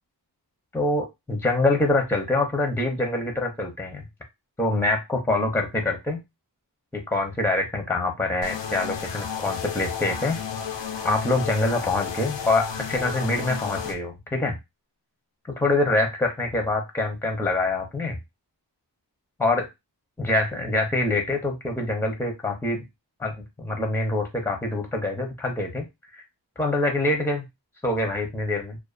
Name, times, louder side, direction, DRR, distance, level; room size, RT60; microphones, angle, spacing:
voice 1, 0.7-4.0 4.6-6.2 6.9-10.4 11.0-14.6 15.6-18.2 19.4-19.7 20.2-22.8 23.2-25.9 26.6-27.5 27.8-28.8, left 2 dB, 5° left, 3 dB, 0.6 m, -25 dB
sound 1, 8.4-13.9, left 7 dB, 90° left, 0.6 m, -32 dB
2.4 x 2.3 x 2.4 m, 0.22 s
wide cardioid pair, 80°, 42 cm